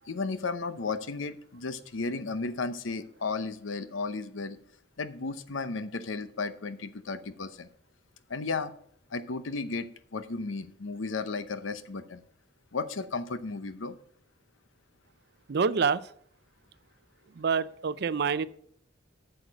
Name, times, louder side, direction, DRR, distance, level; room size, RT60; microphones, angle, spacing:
voice 1, 0.1-4.6 5.0-7.7 8.3-8.7 9.1-12.2 12.7-13.9, left 4 dB, 85° left, 12 dB, 0.7 m, -34 dB
voice 2, 15.5-16.0 17.4-18.5, right 5 dB, 55° right, 16 dB, 0.5 m, -26 dB
8.7 x 6.5 x 6.3 m, 0.65 s
head